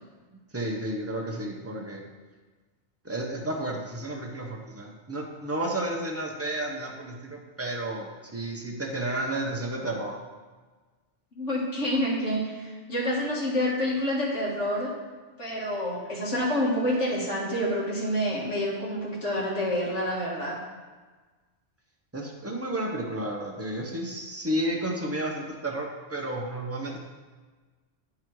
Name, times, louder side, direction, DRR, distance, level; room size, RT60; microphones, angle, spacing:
voice 1, 0.5-2.0 3.0-10.1 22.1-27.0, right 1 dB, 15° right, -1 dB, 0.8 m, -32 dB
voice 2, 11.3-14.9 15.4-20.6, equal, 85° left, -4 dB, 1.9 m, -28 dB
9.2 x 3.8 x 4.6 m, 1.4 s
omnidirectional pair, 1.2 m